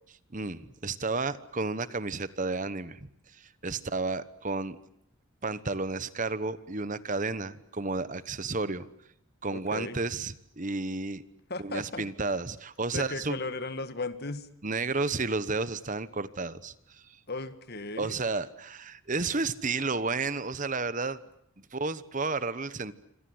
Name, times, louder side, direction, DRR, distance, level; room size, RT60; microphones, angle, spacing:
voice 1, 0.3-3.0 3.3-4.8 5.4-8.9 9.4-11.2 11.6-13.4 14.6-17.2 18.0-21.2 21.7-22.9, right 3 dB, 35° right, 15 dB, 1.1 m, -32 dB
voice 2, 9.5-10.0 11.5-12.0 12.9-14.4 17.3-18.2, left 3 dB, 45° left, 11 dB, 1.8 m, -36 dB
27.5 x 26.0 x 7.9 m, 0.75 s
head